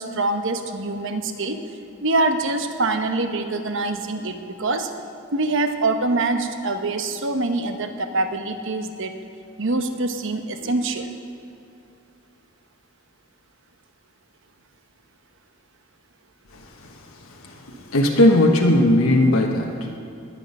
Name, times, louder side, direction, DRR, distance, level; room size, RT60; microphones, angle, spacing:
voice 1, 0.0-1.6 2.0-4.9 5.3-9.1 9.6-11.1, right 2 dB, 65° right, 7 dB, 1.0 m, -24 dB
voice 2, 16.5-17.0 17.3-20.0, left 1 dB, 80° left, 1 dB, 1.2 m, -19 dB
20.5 x 8.6 x 5.5 m, 2.6 s
head